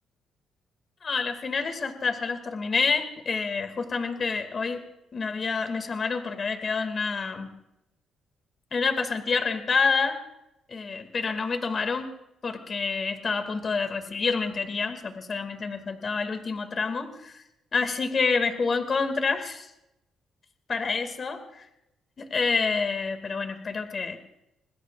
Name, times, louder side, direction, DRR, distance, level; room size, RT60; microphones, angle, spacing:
voice 1, 1.0-4.8 5.1-7.5 8.7-10.2 10.7-12.1 12.4-17.4 17.7-19.7 20.7-21.6 22.2-24.2, left 4 dB, 40° left, 7 dB, 2.3 m, -28 dB
26.5 x 20.5 x 2.5 m, 0.85 s
cardioid pair, 90°, 0 cm